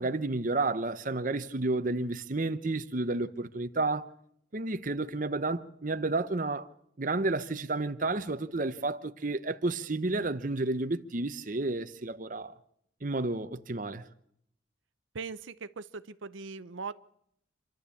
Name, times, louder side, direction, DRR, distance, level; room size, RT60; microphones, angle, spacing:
voice 1, 0.0-4.1 4.5-6.7 7.0-12.5 13.0-14.0, right 2 dB, 45° right, 0.9 m, -31 dB
voice 2, 15.1-16.9, right 4 dB, 90° right, 0.7 m, -40 dB
27.0 x 12.0 x 8.5 m
head